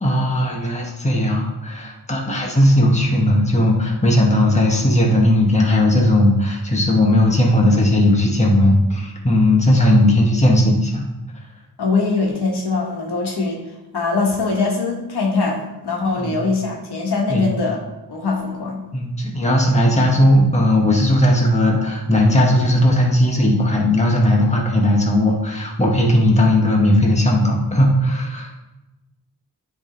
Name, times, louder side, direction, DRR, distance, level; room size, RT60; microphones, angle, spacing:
voice 1, 0.0-11.1 16.2-16.4 17.3-17.5 18.9-28.5, left 1 dB, 15° left, -1 dB, 1.4 m, -17 dB
voice 2, 11.8-17.8 18.1-18.8, left 3 dB, 75° left, -1 dB, 1.5 m, -22 dB
9.5 x 3.7 x 3.9 m, 1.0 s
wide cardioid pair, 85°, 40 cm